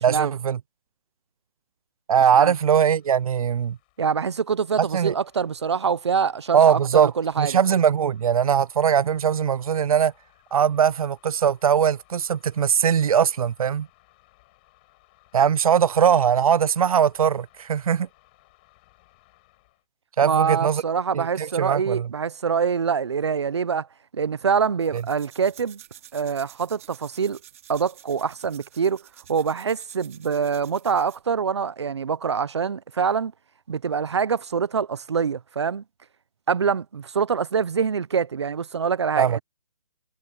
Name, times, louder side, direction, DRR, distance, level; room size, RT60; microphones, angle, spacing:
voice 1, 0.0-0.6 2.1-3.8 4.8-5.1 6.5-10.1 10.5-13.9 15.3-18.1 20.2-20.8 21.1-22.1 24.9-25.0 39.2-39.4, right 8 dB, 85° right, 0.4 m, -20 dB
sound 1, 2.8-19.8, left 22 dB, 15° left, 6.0 m, -61 dB
voice 2, 4.0-7.6 20.2-23.9 24.1-25.8 26.1-27.4 27.7-29.0 29.3-33.3 33.7-35.8 36.5-39.4, right 6 dB, 50° right, 0.7 m, -25 dB
sound 2, 24.8-31.3, right 11 dB, 25° right, 2.9 m, -50 dB
hypercardioid pair, 180°, 18 cm